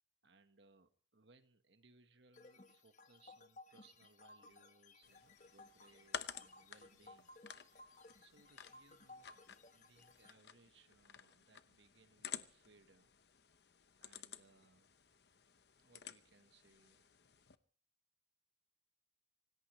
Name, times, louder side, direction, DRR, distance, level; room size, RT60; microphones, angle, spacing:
voice 1, 0.2-7.9 8.2-9.4 9.7-13.1 14.0-14.9 15.8-17.1, right 3 dB, 70° right, 9 dB, 1.4 m, -69 dB
sound 1, 2.3-10.3, left 2 dB, 40° left, 1.3 m, -60 dB
sound 2, 5.0-17.6, left 8 dB, 60° left, 0.9 m, -53 dB
26.0 x 17.0 x 3.2 m, 0.42 s
head